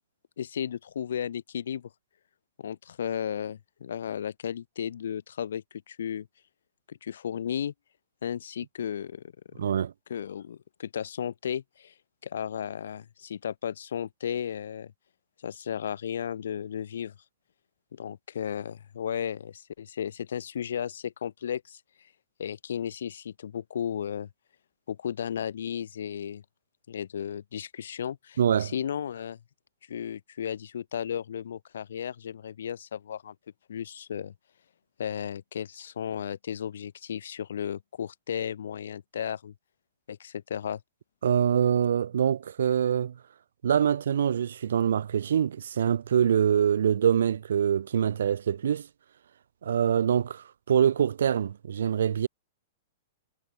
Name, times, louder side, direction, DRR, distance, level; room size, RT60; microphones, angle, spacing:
voice 1, 0.4-1.9 2.6-6.3 6.9-7.7 8.2-9.2 9.5-9.6 10.1-11.9 12.2-14.9 15.4-17.1 17.9-21.8 22.4-24.3 24.9-26.4 26.9-29.4 29.9-33.3 33.7-34.3 35.0-39.5 40.1-40.8, left 8 dB, 85° left, 1.1 m, -34 dB
voice 2, 9.6-9.9 28.4-28.7 41.2-43.2 43.6-48.9 49.6-52.3, right 8 dB, 85° right, 0.9 m, -24 dB
hypercardioid pair, 175°, 0 cm